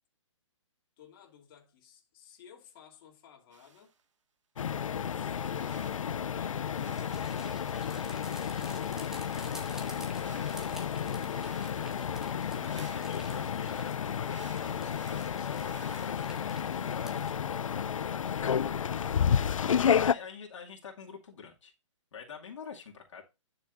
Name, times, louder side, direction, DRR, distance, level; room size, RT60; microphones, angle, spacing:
voice 1, 1.0-3.9, left 8 dB, 45° left, 2.7 m, -57 dB
sound 1, 3.5-4.0 5.1-6.1 6.7-8.0 8.7-13.6 14.2-16.1, right 6 dB, 70° right, 1.7 m, -56 dB
sound 2, 4.6-20.1, left 8 dB, 85° left, 0.4 m, -31 dB
sound 3, 6.7-17.3, equal, 5° right, 1.6 m, -51 dB
voice 2, 12.5-17.2 19.6-21.7 22.1-23.2, left 6 dB, 65° left, 2.3 m, -46 dB
11.0 x 6.5 x 2.6 m
hypercardioid pair, 140°, 16 cm